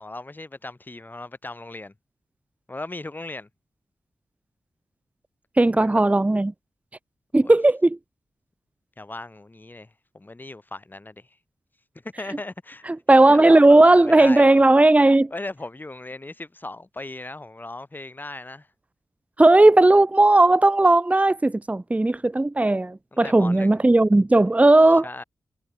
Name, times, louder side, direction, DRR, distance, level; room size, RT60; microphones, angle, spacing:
voice 1, 0.0-1.9 2.7-3.5 5.7-6.0 7.4-7.5 9.0-11.3 12.2-12.8 13.3-14.5 15.3-18.7 23.2-23.7 24.9-25.2, left 2 dB, 25° left, 4.3 m, -37 dB
voice 2, 5.6-6.5 7.3-8.0 12.9-15.3 19.4-25.1, right 2 dB, 20° right, 1.0 m, -16 dB
cardioid pair, 60°, 7 cm